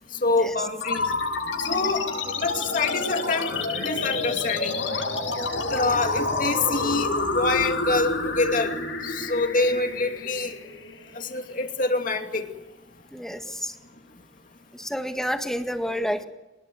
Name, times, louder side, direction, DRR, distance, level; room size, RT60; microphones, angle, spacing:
voice 1, 0.2-1.1 1.6-2.1 2.4-4.7 5.7-8.7 9.0-10.5 11.1-12.5, left 3 dB, 45° left, 4 dB, 2.5 m, -26 dB
sound 1, 0.8-11.8, left 3 dB, 85° left, 7.3 m, -28 dB
voice 2, 13.1-13.8 14.7-16.2, equal, 5° left, 5 dB, 1.9 m, -29 dB
25.0 x 20.0 x 9.4 m, 1.0 s
head